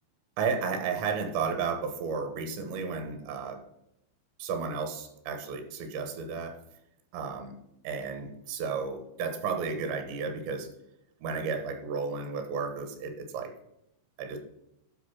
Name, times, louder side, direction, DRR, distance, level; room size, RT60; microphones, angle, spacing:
voice 1, 0.4-3.6 4.4-6.6 7.1-7.5 7.9-10.7 11.2-13.5 14.2-14.4, right 5 dB, 80° right, 7 dB, 3.5 m, -33 dB
11.0 x 5.2 x 5.9 m, 0.83 s
omnidirectional pair, 5.1 m